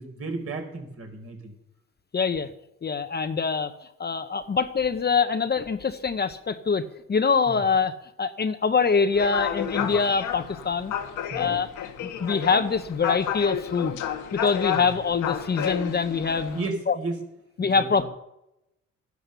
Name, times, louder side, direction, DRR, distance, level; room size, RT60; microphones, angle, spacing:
voice 1, 0.0-1.5 7.5-7.6 9.8-9.9 11.3-11.5 14.7-14.9 16.5-17.2 17.6-18.1, right 3 dB, 50° right, 3 dB, 4.3 m, -34 dB
voice 2, 2.1-2.5 2.8-3.7 4.0-10.9 11.3-11.7 12.2-13.9 14.3-16.6 16.9-17.0 17.6-18.0, left 5 dB, 35° left, 9 dB, 0.9 m, -24 dB
sound 1, 9.1-16.7, left 9 dB, 85° left, 1.5 m, -31 dB
12.0 x 11.0 x 6.9 m, 0.86 s
cardioid pair, 90°, 30 cm